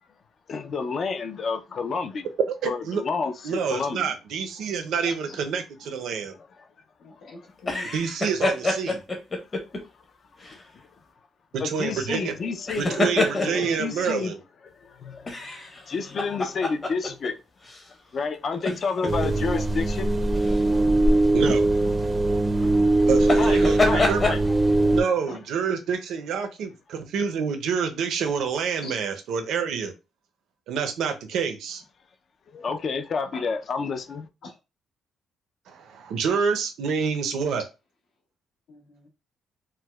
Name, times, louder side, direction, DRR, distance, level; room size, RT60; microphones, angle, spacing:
voice 1, 0.5-2.3 2.6-4.1 5.0-5.1 10.4-10.6 11.6-13.0 13.3-14.3 14.8-15.5 15.8-17.3 18.1-20.1 20.7-20.8 22.6-22.8 23.4-24.4 25.3-25.4 32.5-34.3, left 5 dB, 45° left, 0.4 m, -30 dB
voice 2, 2.5-3.0 3.4-6.4 7.9-9.0 11.5-12.4 12.8-14.4 21.3-21.6 23.1-24.3 24.7-29.9 30.7-31.8 35.7-37.6, right 6 dB, 75° right, 0.5 m, -27 dB
voice 3, 7.0-7.9 14.0-14.1 19.0-19.6 25.3-25.4 28.8-29.0 33.3-33.4 34.4-34.5 37.5-37.6 38.7-39.1, left 2 dB, 75° left, 1.0 m, -43 dB
sound 1, 7.6-9.8 10.4-10.6 12.5-13.8 15.3-17.3 17.6-17.8 18.5-19.3 20.4-20.6 23.2-24.4, left 2 dB, 25° left, 0.8 m, -26 dB
sound 2, 19.1-25.0, right 2 dB, 20° right, 0.5 m, -21 dB
4.4 x 2.0 x 2.2 m
cardioid pair, 135°, 0 cm